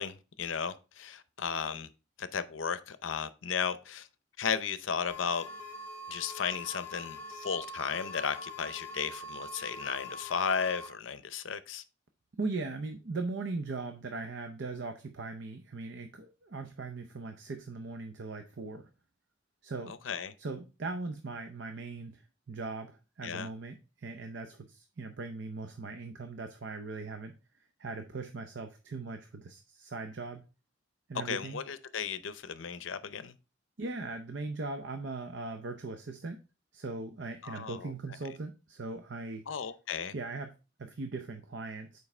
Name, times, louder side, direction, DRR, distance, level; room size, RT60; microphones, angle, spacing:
voice 1, 0.0-1.9 2.2-4.1 4.4-5.5 6.1-11.8 19.9-20.3 23.2-23.5 31.2-33.4 37.4-37.9 39.5-40.1, left 6 dB, 80° left, 0.6 m, -35 dB
sound 1, 5.1-10.9, left 1 dB, 10° left, 1.2 m, -43 dB
voice 2, 12.4-18.9 19.6-20.0 20.4-22.2 22.5-27.3 27.8-30.4 31.1-31.6 33.8-36.4 36.7-39.4 40.1-42.0, right 3 dB, 65° right, 0.6 m, -39 dB
7.2 x 4.7 x 3.2 m
head